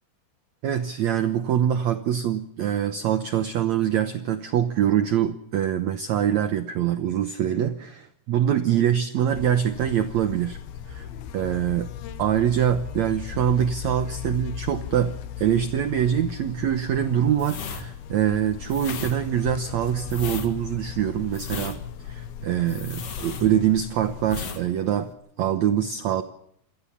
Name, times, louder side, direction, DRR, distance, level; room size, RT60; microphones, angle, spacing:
voice 1, 0.6-10.6 10.9-11.1 11.3-11.9 12.2-21.8 22.0-25.1 25.4-26.2, right 10 dB, 80° right, 10 dB, 1.6 m, -24 dB
Buzz, 9.3-24.3, left 9 dB, 75° left, 3.1 m, -37 dB
sound 1, 17.3-23.9 24.2-24.6 24.9-25.1, left 5 dB, 45° left, 2.6 m, -36 dB
27.0 x 18.5 x 7.2 m, 0.74 s
omnidirectional pair, 4.6 m